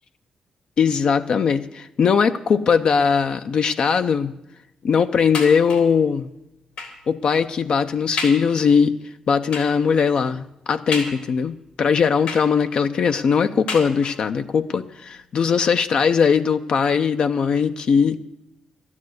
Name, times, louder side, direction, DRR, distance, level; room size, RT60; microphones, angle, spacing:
voice 1, 0.8-4.3 4.8-6.3 7.1-8.9 9.3-18.2, left 6 dB, 50° left, 9 dB, 0.5 m, -20 dB
sound 1, 5.3-6.0 6.8-7.1 7.6-7.7 8.2-8.5 9.5-9.9 10.9-11.5 12.3-12.9 13.7-14.4 15.2-15.3 15.6-15.7, left 3 dB, 75° left, 3.5 m, -32 dB
12.5 x 9.8 x 7.8 m, 0.86 s
wide cardioid pair, 155°, 2 cm